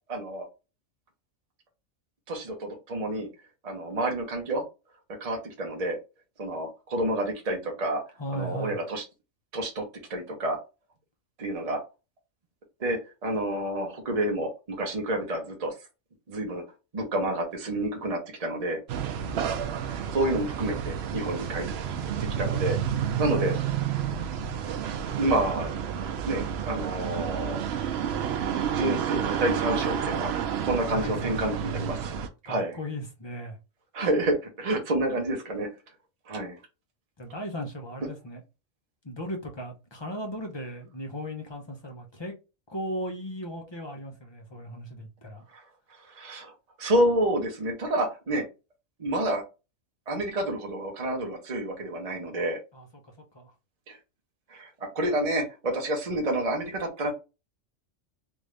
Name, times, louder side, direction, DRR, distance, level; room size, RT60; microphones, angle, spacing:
voice 1, 0.1-0.4 2.3-3.3 3.6-4.6 5.2-6.0 6.4-8.0 8.3-9.0 9.5-9.8 10.1-10.6 11.4-11.8 12.8-15.7 16.3-16.6 16.9-18.8 19.9-21.7 22.4-24.1 25.2-25.7 26.2-27.6 28.7-30.3 30.6-32.1 32.5-32.7 33.9-35.7 36.3-36.6 45.5-45.6 46.0-48.5 49.0-49.4 50.1-52.6 53.9-54.0 54.5-57.1, right 1 dB, 35° right, 0.8 m, -29 dB
voice 2, 8.2-8.8 30.8-31.6 32.4-33.6 37.2-38.4 39.0-42.3 42.7-45.4 52.7-53.5, equal, 30° left, 0.5 m, -37 dB
sound 1, 18.9-32.3, right 8 dB, 65° right, 0.7 m, -30 dB
3.4 x 2.6 x 3.1 m
omnidirectional pair, 1.4 m